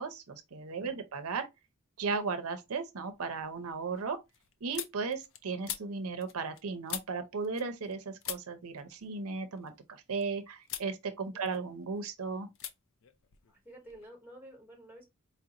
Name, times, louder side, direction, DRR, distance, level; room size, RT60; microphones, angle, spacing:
voice 1, 0.0-1.5 2.0-4.2 4.6-12.5, right 4 dB, 90° right, 0.6 m, -36 dB
sound 1, 2.0-2.5 2.9-7.9 8.2-10.2 10.6-10.9 11.3-12.0 12.5-12.7 13.0-14.1, left 11 dB, 65° left, 0.5 m, -44 dB
voice 2, 11.3-11.6 13.5-15.1, right 1 dB, 10° right, 1.0 m, -52 dB
4.5 x 2.5 x 2.8 m
head